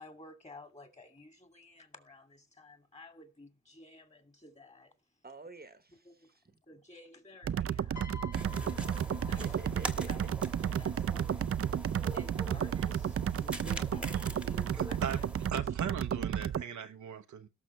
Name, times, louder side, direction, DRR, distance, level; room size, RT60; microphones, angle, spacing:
voice 1, 0.0-4.9 6.1-6.3 6.7-9.4 10.1-10.2 10.6-11.4 12.1-15.0 15.5-15.6, left 2 dB, 25° left, 2.4 m, -53 dB
voice 2, 5.2-6.6 9.3-10.3, right 3 dB, 35° right, 1.1 m, -50 dB
sound 1, 7.4-16.6, right 9 dB, 50° right, 0.5 m, -33 dB
Piano, 8.0-10.3 11.4-11.6, left 4 dB, 75° left, 1.7 m, -50 dB
sound 2, 8.3-15.5, right 1 dB, 5° right, 1.3 m, -44 dB
voice 3, 14.7-17.5, right 8 dB, 85° right, 0.8 m, -39 dB
18.0 x 6.3 x 3.2 m
cardioid pair, 60°, 29 cm